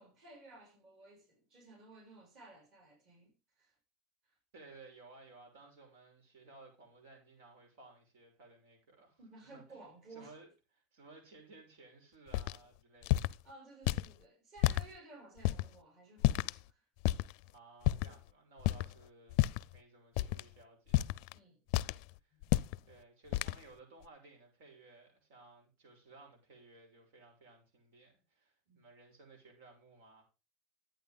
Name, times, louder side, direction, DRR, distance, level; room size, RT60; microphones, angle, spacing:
voice 1, 0.0-3.8 4.2-4.3 9.2-10.4 13.4-16.9 18.7-18.9 21.3-21.9 22.3-22.6 28.7-28.8, right 2 dB, 40° right, 6.2 m, -57 dB
voice 2, 4.5-9.2 9.5-9.8 10.1-10.5 10.9-13.4 17.5-19.5 19.7-21.1 22.2-22.4 22.8-30.2, right 3 dB, 85° right, 6.3 m, -58 dB
sound 1, 12.3-12.6 13.0-13.3 13.9-14.1 14.6-14.8 15.4-15.6 16.2-16.6 17.0-17.3 17.8-18.1 18.6-18.9 19.3-19.7 20.2-20.4 20.9-21.3 21.7-22.0 22.4-22.8 23.3-23.6, left 17 dB, 55° left, 0.4 m, -30 dB
13.0 x 9.1 x 3.6 m
supercardioid pair, 170°, 0 cm